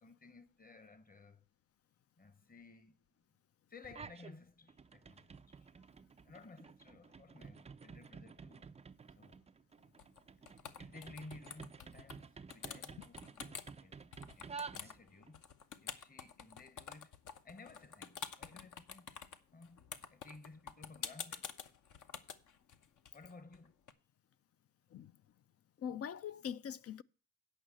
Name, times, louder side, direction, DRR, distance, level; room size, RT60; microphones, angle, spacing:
voice 1, 0.0-1.5 2.2-3.1 3.7-5.7 6.2-8.7 9.1-9.5 10.5-15.4 15.8-17.2 17.4-19.1 19.5-19.8 20.1-21.5 23.1-23.8, left 3 dB, 25° left, 1.1 m, -56 dB
sound 1, 3.8-4.3 4.7-15.3, right 5 dB, 20° right, 0.4 m, -52 dB
sound 2, 10.0-10.2 10.5-12.2 12.5-13.7 14.1-23.9, left 7 dB, 60° left, 1.0 m, -48 dB
voice 2, 25.8-27.0, left 8 dB, 40° left, 0.5 m, -42 dB
8.8 x 5.6 x 7.6 m
cardioid pair, 95°, 35 cm